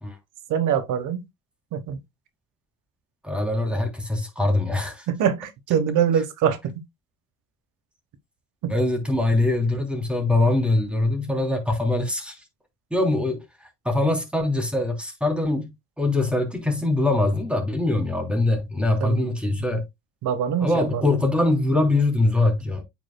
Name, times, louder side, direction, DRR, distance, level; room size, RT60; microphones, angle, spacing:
voice 1, 0.5-1.3 1.7-2.0 5.1-6.7 8.6-8.7 19.0-19.3 19.6-19.8 20.2-21.1, right 8 dB, 90° right, 1.2 m, -24 dB
voice 2, 3.2-5.0 8.7-12.4 12.9-13.4 13.8-15.7 16.0-19.8 20.6-22.8, left 2 dB, 5° right, 3.2 m, -23 dB
8.8 x 6.0 x 2.2 m
cardioid pair, 90°, 30 cm